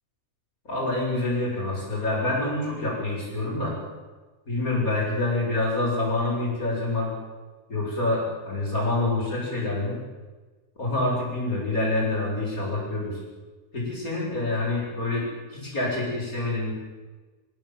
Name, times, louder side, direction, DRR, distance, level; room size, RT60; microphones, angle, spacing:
voice 1, 0.7-3.8 4.5-7.1 7.7-10.0 10.8-13.2 13.7-15.3 15.5-16.7, left 2 dB, 80° left, -3 dB, 8.2 m, -26 dB
27.0 x 17.5 x 7.7 m, 1.3 s
omnidirectional pair, 1.5 m